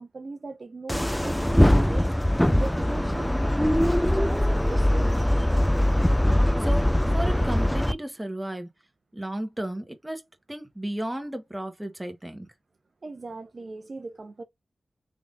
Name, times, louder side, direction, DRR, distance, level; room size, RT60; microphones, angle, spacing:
voice 1, 0.0-2.1 2.5-5.3 13.0-14.4, right 3 dB, 55° right, 0.7 m, -39 dB
sound 1, 0.9-7.9, left 1 dB, 5° left, 0.4 m, -22 dB
voice 2, 6.6-8.7 9.1-10.2 10.5-12.5, right 1 dB, 15° right, 1.1 m, -34 dB
3.6 x 3.3 x 2.5 m
cardioid pair, 65°, 0 cm